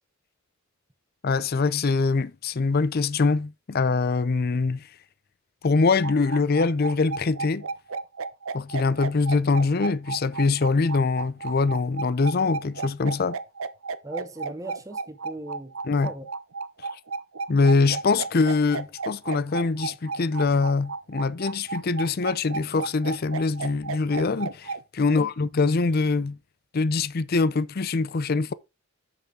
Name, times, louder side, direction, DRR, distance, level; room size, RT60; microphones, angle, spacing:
voice 1, 1.2-4.9 5.6-7.7 8.5-13.4 15.8-16.1 17.5-26.4 26.7-28.5, left 4 dB, 45° left, 0.5 m, -23 dB
sound 1, 6.0-24.8, right 4 dB, 65° right, 0.6 m, -33 dB
voice 2, 14.0-16.2 25.0-25.3, right 1 dB, 15° right, 0.8 m, -38 dB
8.2 x 6.8 x 3.7 m
head